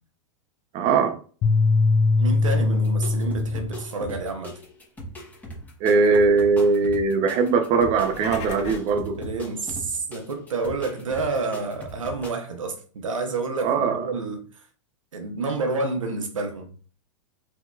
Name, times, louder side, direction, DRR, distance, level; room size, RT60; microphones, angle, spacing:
voice 1, 0.7-1.2 5.8-9.2 13.6-14.0, right 4 dB, 40° right, 0.7 m, -20 dB
sound 1, 1.4-3.9, left 3 dB, 30° left, 0.5 m, -21 dB
voice 2, 2.2-4.5 9.2-14.5 15.1-16.7, right 3 dB, 90° right, 0.9 m, -29 dB
sound 2, 2.8-12.3, right 1 dB, 10° left, 1.1 m, -40 dB
sound 3, 7.9-9.0, left 6 dB, 65° left, 1.0 m, -37 dB
4.5 x 2.9 x 2.4 m
hypercardioid pair, 115°, 16 cm